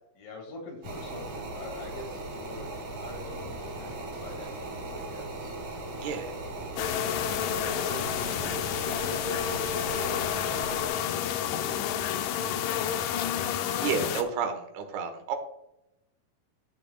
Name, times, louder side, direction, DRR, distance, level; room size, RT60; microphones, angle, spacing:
voice 1, 0.2-6.1 6.6-6.7, left 2 dB, 65° left, 0 dB, 3.7 m, -46 dB
sound 1, 0.8-10.9, right 2 dB, 60° right, 3.5 m, -38 dB
voice 2, 6.0-6.3 13.8-15.4, right 6 dB, 85° right, 6 dB, 3.0 m, -31 dB
sound 2, 6.8-14.2, left 9 dB, 85° left, 1.9 m, -30 dB
14.0 x 5.9 x 2.2 m, 0.87 s
omnidirectional pair, 4.4 m